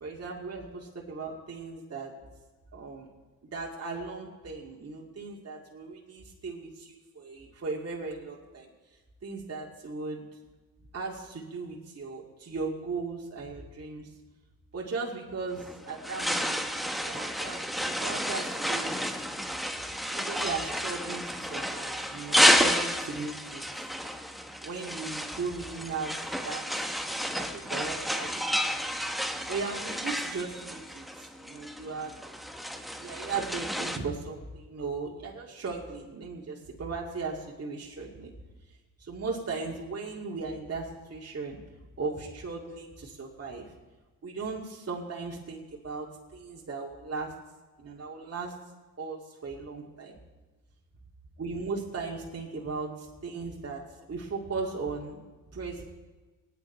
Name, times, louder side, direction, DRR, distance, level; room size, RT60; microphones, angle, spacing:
voice 1, 0.0-2.1 2.7-3.1 3.5-8.7 9.2-10.2 10.9-14.1 14.7-19.0 20.1-23.7 24.6-26.7 27.3-28.5 28.8-28.9 29.5-32.2 33.0-38.3 39.0-41.6 42.0-43.7 44.2-46.1 46.3-47.3 47.8-48.5 49.0-50.2 51.4-53.8 54.1-55.2 55.5-55.8, right 4 dB, 40° right, -2 dB, 2.3 m, -37 dB
sound 1, 15.5-34.0, equal, ahead, 1.0 m, -31 dB
20.0 x 9.4 x 4.4 m, 1.2 s
cardioid pair, 90°, 38 cm